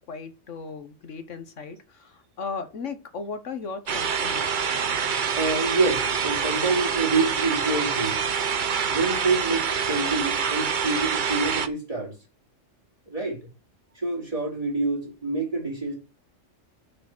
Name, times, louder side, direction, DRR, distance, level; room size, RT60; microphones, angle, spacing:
voice 1, 0.1-4.5, left 4 dB, 75° left, 1.5 m, -36 dB
sound 1, 3.9-11.7, right 6 dB, 45° right, 0.9 m, -26 dB
voice 2, 5.3-8.2 8.9-12.1 13.1-13.4 14.0-15.9, right 3 dB, 30° right, 3.7 m, -27 dB
6.7 x 6.7 x 6.1 m
omnidirectional pair, 1.3 m